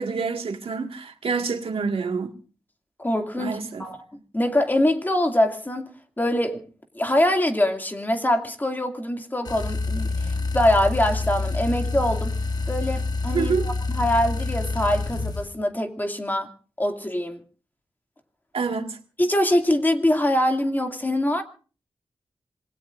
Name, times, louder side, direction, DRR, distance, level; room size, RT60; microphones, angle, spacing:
voice 1, 0.0-2.3 3.4-3.8 13.3-13.7 18.5-19.0, right 5 dB, 85° right, 1.9 m, -27 dB
voice 2, 3.0-5.9 6.2-6.7 6.9-12.3 12.7-16.5 16.8-17.4 19.2-21.4, left 1 dB, 20° left, 2.4 m, -24 dB
sound 1, 9.4-15.5, left 3 dB, 45° left, 1.2 m, -27 dB
26.5 x 20.5 x 2.6 m
wide cardioid pair, 115°, 9 cm